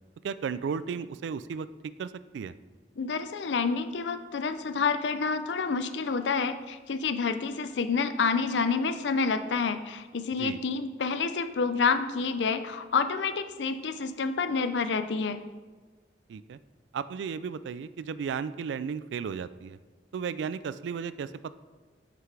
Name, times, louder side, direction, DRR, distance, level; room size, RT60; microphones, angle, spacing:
voice 1, 0.2-1.7 2.0-2.5 10.4-10.6 16.3-16.6 16.9-19.8 20.1-21.5, right 6 dB, 80° right, 15 dB, 0.3 m, -34 dB
voice 2, 3.0-15.4, left 5 dB, 80° left, 10 dB, 0.5 m, -28 dB
5.8 x 5.7 x 4.7 m, 1.4 s
head